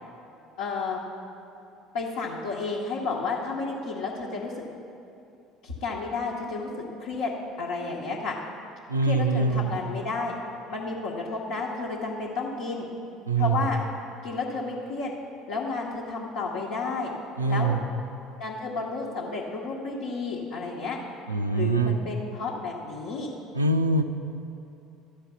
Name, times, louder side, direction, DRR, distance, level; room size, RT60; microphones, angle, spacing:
voice 1, 0.6-1.0 1.9-4.6 5.6-6.7 7.0-7.3 7.6-8.3 9.0-10.3 10.7-12.9 13.4-13.8 14.2-15.1 15.5-17.1 17.5-17.8 18.4-21.0 21.5-23.3, left 4 dB, 65° left, -5 dB, 1.0 m, -31 dB
voice 2, 8.9-9.8 13.3-13.6 17.4-17.8 21.3-22.0 23.5-24.0, right 3 dB, 90° right, 6 dB, 0.4 m, -24 dB
12.5 x 5.0 x 7.0 m, 2.7 s
figure-of-eight pair, 60°, 0 cm